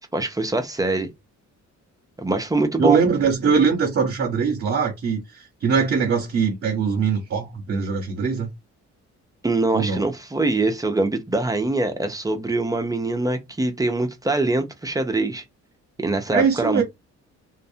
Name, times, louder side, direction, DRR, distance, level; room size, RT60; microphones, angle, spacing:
voice 1, 0.1-1.1 2.2-3.0 9.4-15.4 16.0-16.8, right 2 dB, 10° right, 0.4 m, -23 dB
voice 2, 2.8-8.5 9.7-10.0 16.3-16.8, right 5 dB, 50° right, 0.8 m, -22 dB
2.5 x 2.0 x 2.6 m
cardioid pair, 110°, 30 cm